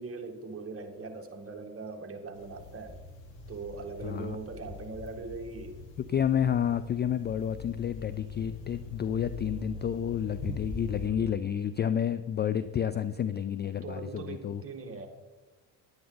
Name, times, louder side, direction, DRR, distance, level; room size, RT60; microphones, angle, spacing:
voice 1, 0.0-3.0 3.5-5.8 13.6-15.1, right 4 dB, 30° right, 3 dB, 1.9 m, -40 dB
sound 1, 2.3-11.1, left 3 dB, 75° left, 2.2 m, -43 dB
voice 2, 4.0-4.4 6.1-14.6, left 9 dB, 25° left, 14 dB, 0.3 m, -30 dB
10.5 x 10.0 x 3.9 m, 1.2 s
supercardioid pair, 80°, 45 cm